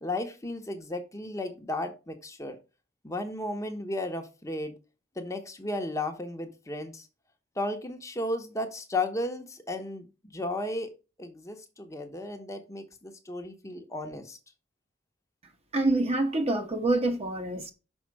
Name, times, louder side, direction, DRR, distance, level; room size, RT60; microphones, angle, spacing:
voice 1, 0.0-2.6 3.0-4.7 5.2-7.1 7.6-10.1 10.3-10.9 11.2-14.4, left 2 dB, 20° left, 1.0 m, -34 dB
voice 2, 15.7-17.7, right 2 dB, 35° right, 1.1 m, -26 dB
6.3 x 5.0 x 4.7 m
head